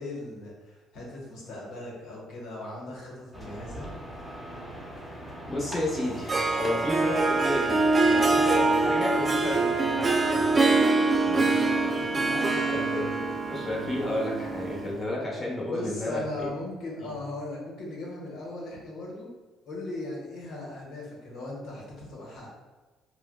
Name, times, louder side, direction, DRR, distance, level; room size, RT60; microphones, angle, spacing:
voice 1, 0.0-3.9 11.3-13.2 15.7-19.3 19.7-22.5, left 2 dB, 75° left, -3 dB, 1.0 m, -38 dB
sound 1, 3.3-10.8, equal, ahead, 1.1 m, -40 dB
voice 2, 5.5-10.7 11.1-11.6 12.7-13.1 13.5-16.5 17.0-17.1, left 1 dB, 25° left, -4 dB, 1.1 m, -32 dB
Harp, 6.0-15.0, right 3 dB, 30° right, 0.4 m, -24 dB
4.7 x 2.1 x 2.2 m, 1.2 s
supercardioid pair, 65°, 0 cm